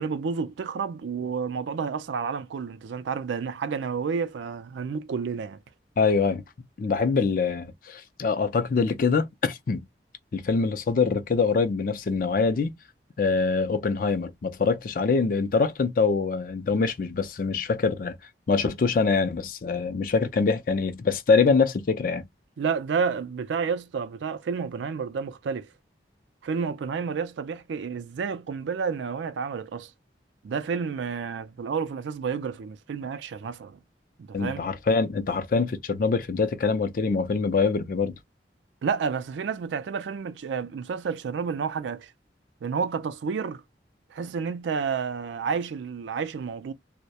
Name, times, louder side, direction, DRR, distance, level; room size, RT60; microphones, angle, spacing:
voice 1, 0.0-5.6 22.6-25.7 26.4-29.9 30.4-33.8 34.2-34.6 38.8-42.1 42.6-43.6 44.1-46.7, right 5 dB, 85° right, 0.4 m, -30 dB
voice 2, 6.0-6.4 6.8-9.9 10.3-12.7 13.2-18.2 18.5-22.3 34.3-38.2, left 4 dB, 50° left, 0.4 m, -24 dB
2.2 x 2.1 x 2.7 m
head